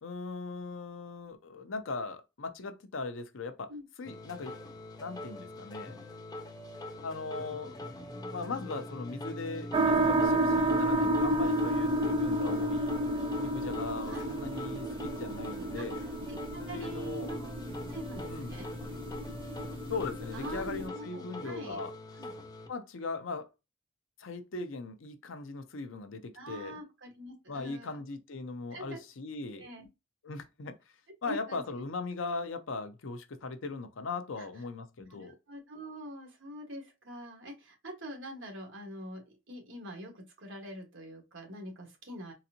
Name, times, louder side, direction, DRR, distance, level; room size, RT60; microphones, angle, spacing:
voice 1, 0.0-3.7 4.0-4.6 5.0-6.0 7.0-7.7 8.3-13.0 13.4-16.0 16.7-17.3 18.3-18.5 19.9-21.9 22.7-23.5 24.2-26.8 27.5-29.7 30.2-30.7 31.2-35.3, left 3 dB, 85° left, 0.6 m, -39 dB
sound 1, 4.1-22.7, left 1 dB, 20° left, 0.6 m, -42 dB
sound 2, 9.7-20.9, right 1 dB, 25° right, 0.4 m, -31 dB
voice 2, 16.2-17.6 17.9-18.7 20.3-21.8 22.2-22.3 26.3-28.0 28.7-29.0 29.5-29.9 31.2-31.6 34.4-34.5 35.1-42.3, right 1 dB, 70° right, 1.4 m, -44 dB
4.0 x 2.5 x 2.7 m
head